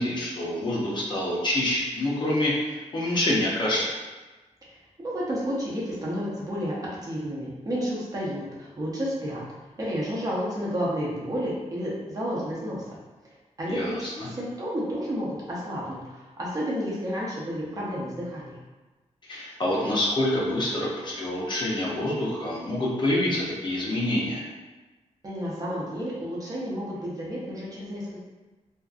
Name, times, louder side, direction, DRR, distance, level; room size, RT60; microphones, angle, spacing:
voice 1, 0.0-4.0 13.7-14.3 19.3-24.4, left 1 dB, 40° left, -6 dB, 0.6 m, -26 dB
voice 2, 5.0-6.8 7.0-9.4 9.8-12.8 13.6-18.6 25.2-28.2, equal, 30° right, -6 dB, 0.6 m, -31 dB
2.6 x 2.3 x 2.3 m, 1.2 s
wide cardioid pair, 160°, 12 cm